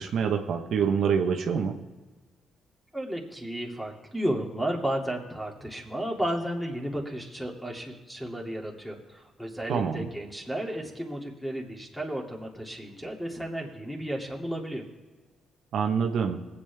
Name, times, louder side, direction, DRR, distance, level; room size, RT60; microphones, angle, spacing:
voice 1, 0.0-1.8 9.7-10.1 15.7-16.4, right 6 dB, 70° right, 4 dB, 1.1 m, -26 dB
voice 2, 2.9-14.8, right 1 dB, 5° left, -1 dB, 2.6 m, -33 dB
20.0 x 8.5 x 3.5 m, 1.3 s
cardioid pair, 90°, 0 cm